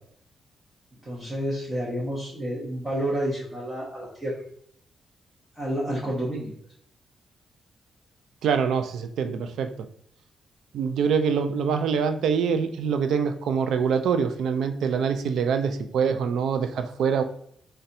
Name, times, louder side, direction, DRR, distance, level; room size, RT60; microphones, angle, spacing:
voice 1, 1.1-4.3 5.6-6.5, equal, 10° right, -6 dB, 0.8 m, -29 dB
voice 2, 8.4-9.7 10.7-17.2, right 6 dB, 85° right, 8 dB, 0.3 m, -24 dB
4.0 x 2.2 x 2.6 m, 0.65 s
cardioid pair, 140°, 0 cm